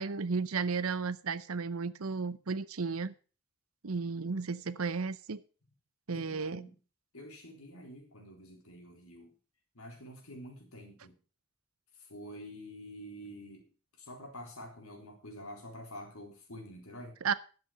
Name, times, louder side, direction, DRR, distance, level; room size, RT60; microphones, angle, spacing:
voice 1, 0.0-3.1 3.8-5.4 6.1-6.6 17.2-17.3, right 5 dB, 85° right, 17 dB, 0.8 m, -33 dB
voice 2, 6.1-6.8 7.1-9.3 9.7-11.2 12.0-13.7 14.0-17.2, equal, 90° left, 2 dB, 3.9 m, -48 dB
11.5 x 7.6 x 6.5 m, 0.37 s
head